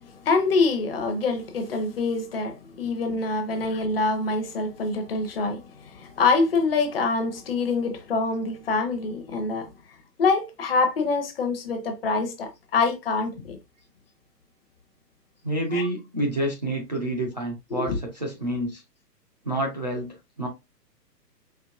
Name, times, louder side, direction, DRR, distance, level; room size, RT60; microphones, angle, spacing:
voice 1, 0.0-9.7 10.2-13.6 15.7-15.9 17.7-18.0, left 4 dB, 35° left, 0.8 m, -25 dB
voice 2, 15.4-18.8 19.4-20.5, right 1 dB, 30° right, 0.4 m, -28 dB
4.6 x 3.1 x 2.4 m
hypercardioid pair, 155°, 50 cm